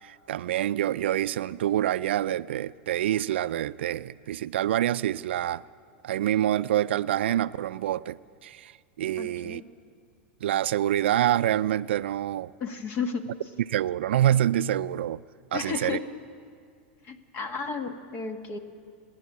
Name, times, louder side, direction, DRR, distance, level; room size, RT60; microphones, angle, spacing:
voice 1, 0.0-5.6 6.0-8.7 9.0-9.6 10.4-12.5 13.7-15.2 15.5-16.0, right 12 dB, 85° right, 0.4 m, -26 dB
voice 2, 9.2-9.6 12.6-13.2 15.5-16.0 17.0-18.6, left 5 dB, 40° left, 1.7 m, -33 dB
29.5 x 10.5 x 8.5 m
supercardioid pair, 130°, 6 cm